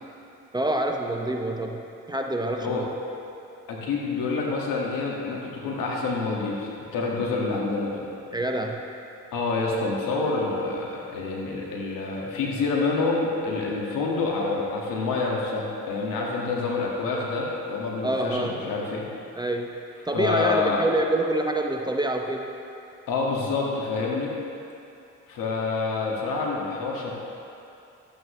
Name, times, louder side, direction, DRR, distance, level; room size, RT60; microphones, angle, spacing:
voice 1, 0.5-2.9 8.3-8.8 18.0-18.7 19.4-19.7 20.1-22.5, right 1 dB, 10° right, 2 dB, 0.7 m, -26 dB
voice 2, 3.7-8.0 9.3-19.0 20.1-20.8 23.1-24.3 25.3-27.1, left 3 dB, 75° left, -3 dB, 1.9 m, -27 dB
12.0 x 8.7 x 3.2 m, 2.8 s
supercardioid pair, 75°, 34 cm